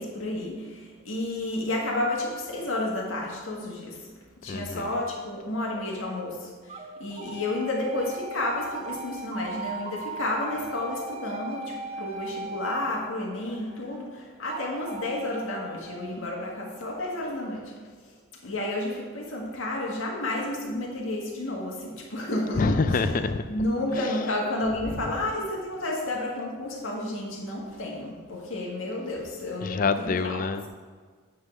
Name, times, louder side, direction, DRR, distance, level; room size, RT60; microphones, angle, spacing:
voice 1, 0.0-4.1 4.4-17.7 18.4-23.1 23.5-30.5, left 1 dB, 70° left, -2 dB, 1.7 m, -31 dB
voice 2, 4.5-4.9 22.6-23.4 29.6-30.7, left 4 dB, 40° left, 10 dB, 0.4 m, -26 dB
sound 1, 5.7-6.2 6.7-13.8 14.5-16.2, right 3 dB, 30° right, 0.5 m, -39 dB
9.5 x 3.7 x 6.2 m, 1.5 s
head